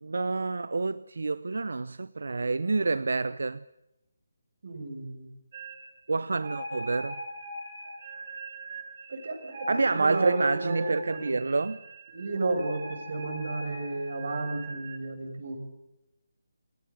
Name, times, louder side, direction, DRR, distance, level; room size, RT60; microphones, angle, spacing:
voice 1, 0.0-3.6 6.1-7.2 9.7-11.8, right 3 dB, 70° right, 0.8 m, -28 dB
voice 2, 4.6-5.3 9.1-11.5 12.1-15.6, right 2 dB, 45° right, 6.6 m, -32 dB
sound 1, 5.5-5.9 6.3-15.0, right 1 dB, 25° right, 4.3 m, -41 dB
29.0 x 18.0 x 8.3 m
hypercardioid pair, 175°, 0 cm